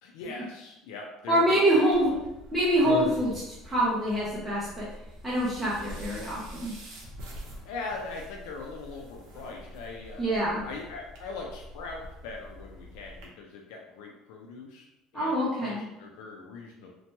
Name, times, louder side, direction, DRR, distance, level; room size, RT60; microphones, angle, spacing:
voice 1, 0.0-2.2 7.6-10.3 10.6-14.9 15.1-16.9, left 3 dB, 80° left, 0 dB, 0.4 m, -41 dB
voice 2, 1.3-2.1 2.5-4.9 5.2-6.7 10.2-10.6 15.1-15.8, right 1 dB, 5° right, -9 dB, 0.5 m, -25 dB
sound 1, 1.9-13.3, equal, 70° right, 0.8 m, -44 dB
2.9 x 2.1 x 2.8 m, 0.91 s
cardioid pair, 175°, 0 cm